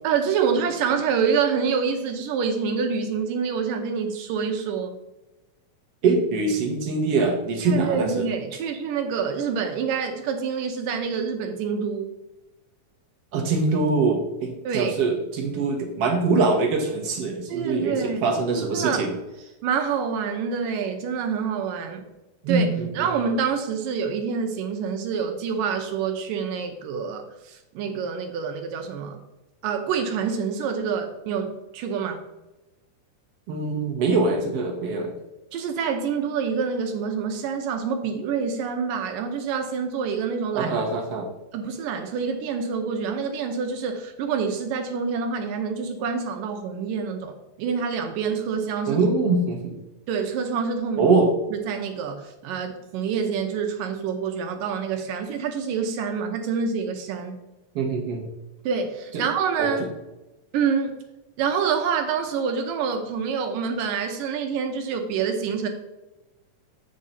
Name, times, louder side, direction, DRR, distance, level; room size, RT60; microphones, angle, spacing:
voice 1, 0.0-4.9 7.7-12.2 14.6-15.0 17.5-19.1 19.6-22.1 22.5-29.2 29.6-32.2 35.5-40.8 41.5-49.0 50.1-51.2 51.5-57.4 58.7-59.9 60.5-61.0 61.4-65.7, right 6 dB, 80° right, 4 dB, 2.3 m, -27 dB
voice 2, 6.0-8.2 13.3-19.1 22.4-23.1 33.5-35.1 40.5-41.3 48.9-49.8 51.0-51.3 57.7-58.2 59.6-59.7, right 3 dB, 60° right, 2 dB, 1.6 m, -23 dB
7.7 x 5.5 x 4.0 m, 1.0 s
omnidirectional pair, 4.0 m